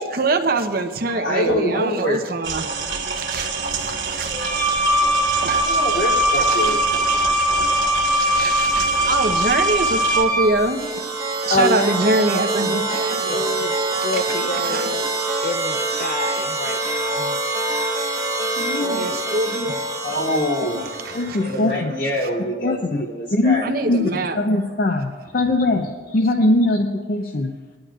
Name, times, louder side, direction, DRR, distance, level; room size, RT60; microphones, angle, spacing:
voice 1, 0.1-2.7 3.1-4.4 5.4-5.6 6.5-6.7 8.1-11.2 11.5-13.2 14.1-14.9 18.8-19.9 21.0-21.4 23.6-24.4, right 2 dB, 55° right, 0.8 m, -24 dB
voice 2, 1.1-2.2 2.5-2.6 4.8-4.9 5.5-6.8 7.1-7.4 7.8-7.9 13.0-13.4 20.0-20.8 21.4-23.6, left 1 dB, 90° left, 3.1 m, -25 dB
sound 1, 2.4-10.2, right 5 dB, 85° right, 2.0 m, -27 dB
Wind instrument woodwind instrument, 4.3-10.6, equal, 5° left, 2.9 m, -20 dB
sound 2, 10.4-21.6, right 2 dB, 15° right, 1.1 m, -25 dB
voice 3, 11.5-17.3 18.6-19.1 19.7-19.8 20.8-21.9 22.6-23.6 23.9-27.6, left 2 dB, 55° left, 0.6 m, -24 dB
20.0 x 11.5 x 2.4 m
head